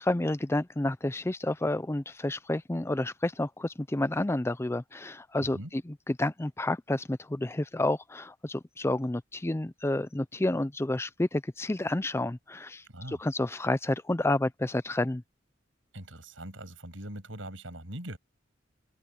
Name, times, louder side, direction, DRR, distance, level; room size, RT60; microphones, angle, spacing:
voice 1, 0.0-15.2, left 1 dB, 15° left, 0.5 m, -30 dB
voice 2, 5.4-5.7 12.9-13.2 15.9-18.2, right 1 dB, 80° right, 7.2 m, -41 dB
open air
head